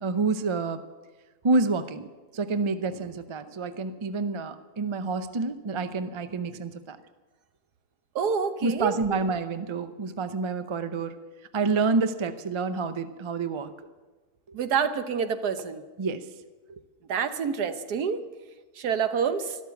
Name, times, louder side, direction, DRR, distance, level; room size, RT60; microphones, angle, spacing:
voice 1, 0.0-0.8 1.4-2.1 2.3-7.0 8.6-11.2 11.5-13.7 16.0-16.2, right 4 dB, 40° right, 10 dB, 0.4 m, -28 dB
voice 2, 8.1-8.9 14.5-15.8 17.1-18.2 18.8-19.4, right 6 dB, 80° right, 9 dB, 1.5 m, -27 dB
12.5 x 12.5 x 7.0 m, 1.3 s
omnidirectional pair, 1.6 m